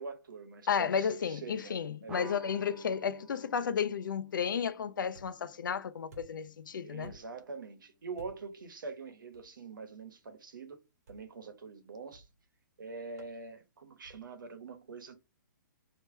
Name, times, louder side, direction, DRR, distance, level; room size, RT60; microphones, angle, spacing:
voice 1, 0.0-1.8 2.0-2.4 6.8-10.8 11.1-12.3 12.8-15.1, right 4 dB, 85° right, 1.2 m, -44 dB
voice 2, 0.7-7.1, left 7 dB, 80° left, 0.6 m, -33 dB
sound 1, 2.1-7.0, right 2 dB, 5° right, 0.4 m, -54 dB
sound 2, 5.1-5.6 6.1-6.6 7.0-7.5 8.2-8.6 9.3-9.5 11.1-11.4 12.1-12.5 13.2-13.4 14.0-14.4, right 2 dB, 50° right, 1.8 m, -55 dB
3.3 x 2.9 x 4.4 m
hypercardioid pair, 160°, 11 cm